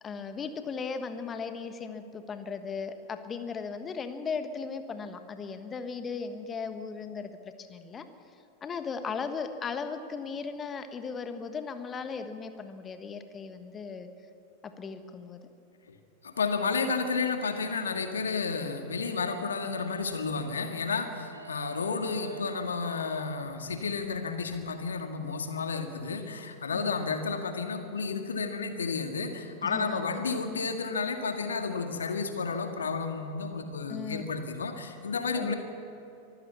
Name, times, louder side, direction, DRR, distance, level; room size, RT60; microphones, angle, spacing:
voice 1, 0.0-8.1 8.6-14.1 14.6-15.5 26.7-27.0 29.6-30.2 33.9-34.2 35.3-35.5, left 5 dB, 20° left, 9 dB, 1.4 m, -37 dB
voice 2, 16.2-35.5, left 4 dB, 70° left, 6 dB, 1.9 m, -32 dB
sound 1, 17.1-23.2, right 2 dB, 85° right, 1.7 m, -48 dB
24.0 x 15.0 x 7.1 m, 2.8 s
figure-of-eight pair, 90°, 0 cm